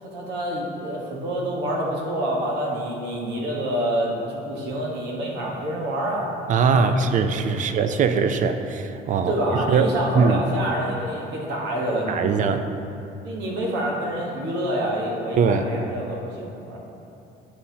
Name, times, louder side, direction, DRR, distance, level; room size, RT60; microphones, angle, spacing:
voice 1, 0.0-6.3 6.7-6.9 7.6-7.7 9.3-12.4 13.2-16.8, right 1 dB, 85° right, -2 dB, 1.2 m, -27 dB
voice 2, 6.5-9.9 10.1-10.4 12.1-12.7 15.4-15.6, right 5 dB, 50° right, 8 dB, 0.5 m, -21 dB
11.0 x 4.2 x 2.8 m, 2.7 s
cardioid pair, 110°, 17 cm